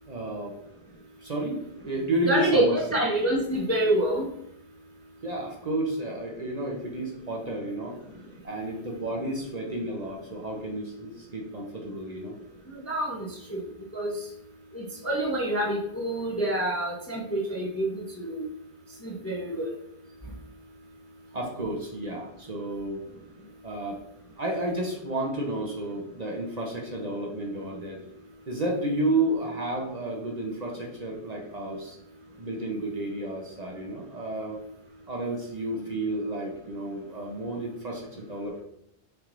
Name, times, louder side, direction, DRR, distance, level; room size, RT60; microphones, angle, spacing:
voice 1, 0.1-0.5 1.2-3.0 5.2-8.0 8.4-12.4 21.3-23.1 23.6-24.0 24.4-28.0 28.5-32.0 32.4-34.6 35.1-38.6, right 1 dB, 40° right, -1 dB, 0.9 m, -31 dB
voice 2, 2.3-4.3 12.9-13.6 13.9-14.1 14.7-18.4 19.0-19.7, right 1 dB, 15° left, -2 dB, 0.6 m, -27 dB
5.9 x 3.4 x 2.6 m, 0.76 s
omnidirectional pair, 1.1 m